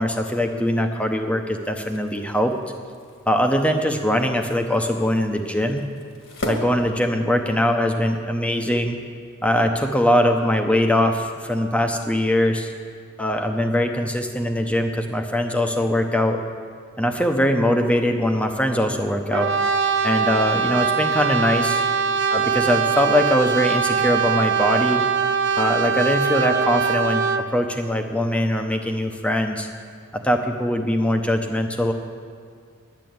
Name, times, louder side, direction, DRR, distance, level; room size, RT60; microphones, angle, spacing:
voice 1, 0.0-2.5 3.3-5.8 6.4-9.0 9.4-12.7 13.2-16.4 17.0-19.5 20.0-21.8 22.3-25.0 25.6-29.7 30.1-31.9, left 1 dB, 5° left, 5 dB, 0.8 m, -22 dB
sound 1, 1.6-7.6, left 1 dB, 60° left, 1.8 m, -38 dB
Brass instrument, 19.3-27.5, right 6 dB, 55° right, 0.6 m, -22 dB
10.5 x 7.6 x 9.4 m, 2.2 s
head